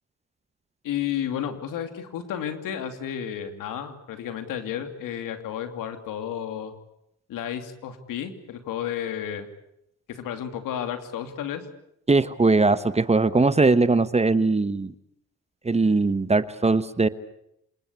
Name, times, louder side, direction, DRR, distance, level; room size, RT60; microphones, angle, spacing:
voice 1, 0.8-6.7 7.3-9.5 10.1-11.7, left 9 dB, 85° left, 7 dB, 2.9 m, -32 dB
voice 2, 12.1-14.9 15.6-17.1, right 3 dB, 20° right, 14 dB, 1.1 m, -20 dB
27.0 x 20.0 x 8.3 m, 0.79 s
cardioid pair, 80°, 32 cm